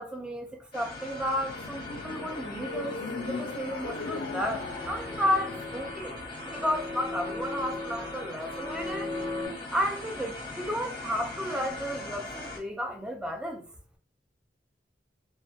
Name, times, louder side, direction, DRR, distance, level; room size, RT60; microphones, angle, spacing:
voice 1, 0.0-3.0 3.3-6.2 6.5-9.1 9.7-13.6, equal, 5° right, 0.4 m, -32 dB
sound 1, 0.7-12.6, left 2 dB, 30° left, 0.8 m, -41 dB
sound 2, 1.0-6.3, left 3 dB, 85° left, 0.4 m, -39 dB
sound 3, 3.6-9.5, left 2 dB, 55° right, 1.1 m, -38 dB
2.2 x 2.1 x 2.7 m
head